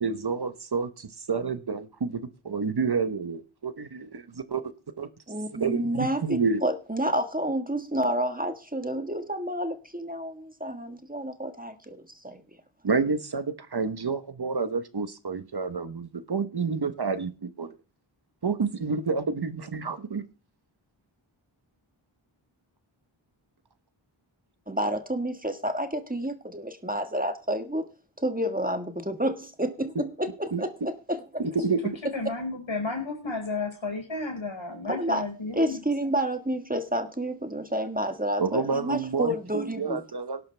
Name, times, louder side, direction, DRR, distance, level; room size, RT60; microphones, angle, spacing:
voice 1, 0.0-3.7 4.5-4.6 5.0-5.1 5.6-6.6 12.8-17.7 18.4-20.3 29.9-30.0 30.5-30.6 31.4-31.8 38.4-40.4, right 4 dB, 50° right, 1.1 m, -29 dB
voice 2, 5.3-12.4 24.7-27.9 28.2-31.2 34.9-35.2 35.5-40.0, right 1 dB, 15° right, 1.6 m, -29 dB
voice 3, 31.8-35.8, left 3 dB, 70° left, 5.1 m, -32 dB
17.5 x 11.0 x 3.4 m
wide cardioid pair, 50°, 49 cm